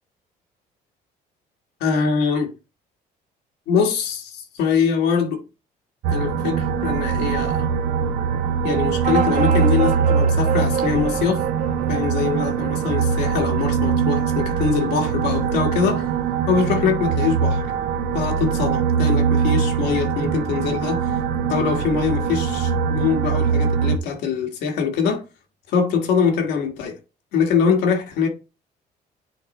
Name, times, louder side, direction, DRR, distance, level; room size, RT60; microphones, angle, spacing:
voice 1, 1.8-2.5 3.7-5.4 6.1-7.7 8.6-11.4 11.9-16.1 16.5-17.6 18.1-21.2 21.5-25.2 25.7-27.0 27.3-28.3, left 6 dB, 85° left, 1.8 m, -23 dB
sound 1, 6.0-24.0, right 6 dB, 85° right, 0.9 m, -22 dB
sound 2, 9.0-14.0, right 7 dB, 45° right, 0.7 m, -28 dB
9.6 x 3.9 x 3.2 m
cardioid pair, 110°, 17 cm